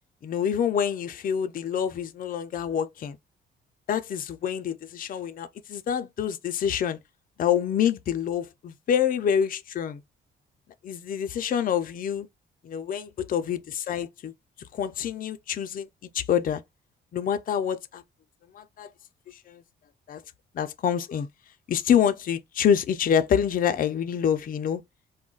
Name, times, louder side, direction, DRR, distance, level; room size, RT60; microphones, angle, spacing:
voice 1, 0.2-3.2 3.9-7.0 7.4-10.0 10.8-12.3 12.6-14.3 14.7-15.9 16.1-16.6 17.1-18.0 18.5-18.9 19.3-19.6 20.1-20.2 20.5-21.3 21.7-24.8, left 8 dB, 45° left, 0.4 m, -26 dB
2.3 x 2.1 x 3.8 m
cardioid pair, 90°, 20 cm